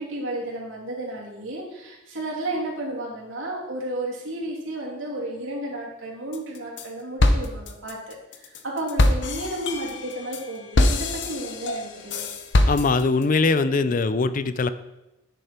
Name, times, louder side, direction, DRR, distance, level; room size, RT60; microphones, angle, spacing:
voice 1, 0.0-12.3, right 1 dB, 85° right, -4 dB, 2.9 m, -32 dB
sound 1, 6.3-6.9 7.2-13.2, left 1 dB, 65° left, 0.8 m, -23 dB
voice 2, 12.7-14.7, left 3 dB, 45° left, 13 dB, 0.4 m, -21 dB
10.0 x 6.7 x 4.4 m, 0.95 s
head